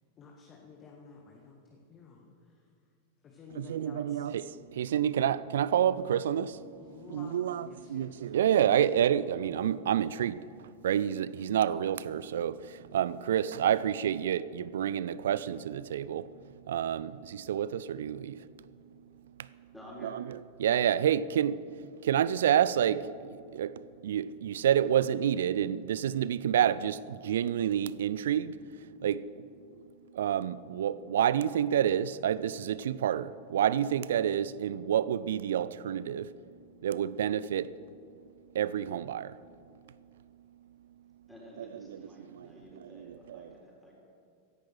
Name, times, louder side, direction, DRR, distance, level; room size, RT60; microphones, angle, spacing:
voice 1, 0.2-2.6 3.2-4.2 6.8-8.3, left 4 dB, 30° left, 1.7 m, -52 dB
voice 2, 3.6-19.0 19.4-19.6 20.0-29.9 30.1-36.3 36.8-37.8 38.5-39.4 41.6-42.0 42.3-42.5 42.8-43.5, right 10 dB, 60° right, 0.4 m, -29 dB
voice 3, 19.7-20.2 41.3-43.9, equal, 5° left, 4.4 m, -51 dB
16.5 x 10.5 x 6.3 m
figure-of-eight pair, 90°, 0 cm